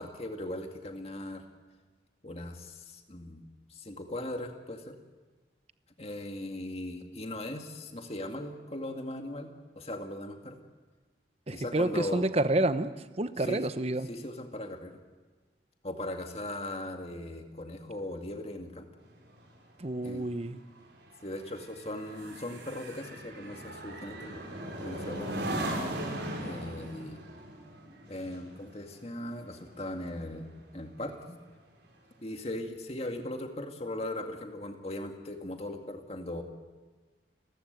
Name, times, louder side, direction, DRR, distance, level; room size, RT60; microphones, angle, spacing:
voice 1, 0.0-1.4 2.2-3.4 3.7-5.0 6.0-10.6 11.5-12.3 13.4-13.6 14.1-15.0 15.8-18.9 20.0-20.3 21.2-24.4 24.8-25.4 26.4-27.2 28.1-30.5 30.7-31.4 32.2-36.4, left 1 dB, 35° left, 4 dB, 2.1 m, -39 dB
voice 2, 11.5-12.9 13.2-14.1 19.8-20.6 26.8-27.1, right 2 dB, 35° right, 12 dB, 0.9 m, -29 dB
sound 1, 19.0-30.7 31.1-31.4, right 1 dB, 90° right, 5.9 m, -39 dB
30.0 x 14.5 x 8.0 m, 1.4 s
head